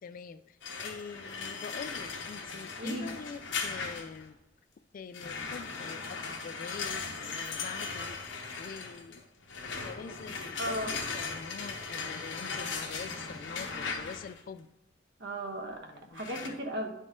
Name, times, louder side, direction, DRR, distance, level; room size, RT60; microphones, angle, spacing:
voice 1, 0.0-4.4 4.9-8.2 8.6-9.2 9.8-14.7 15.8-16.6, left 6 dB, 45° left, 12 dB, 0.3 m, -45 dB
sound 1, 0.6-4.3 5.1-14.4 16.2-16.5, left 4 dB, 75° left, 0.9 m, -38 dB
voice 2, 2.8-3.1 10.6-11.0 15.2-16.9, right 1 dB, 65° right, 3 dB, 1.1 m, -36 dB
10.5 x 4.1 x 3.7 m, 0.83 s
head